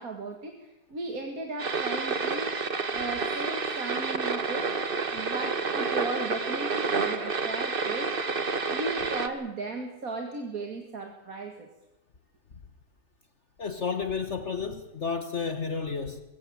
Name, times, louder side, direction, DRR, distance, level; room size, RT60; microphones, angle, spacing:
voice 1, 0.0-2.6 2.9-4.7 5.1-8.1 8.7-11.7, right 3 dB, 60° right, 2.3 m, -36 dB
sound 1, 1.6-9.3, right 4 dB, 35° right, 1.3 m, -29 dB
voice 2, 13.6-16.2, left 5 dB, 45° left, 1.5 m, -31 dB
22.0 x 16.0 x 8.7 m
omnidirectional pair, 1.7 m